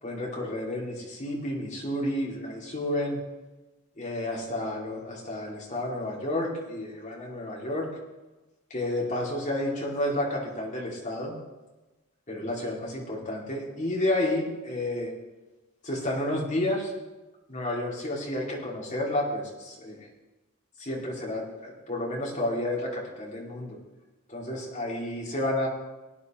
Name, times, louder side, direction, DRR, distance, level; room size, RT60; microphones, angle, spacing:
voice 1, 0.0-3.2 4.0-7.9 8.7-11.4 12.3-15.1 15.8-16.9 17.5-20.1 20.8-23.8 24.3-25.7, left 1 dB, 35° left, -3 dB, 2.5 m, -31 dB
18.0 x 9.7 x 3.1 m, 1.1 s
head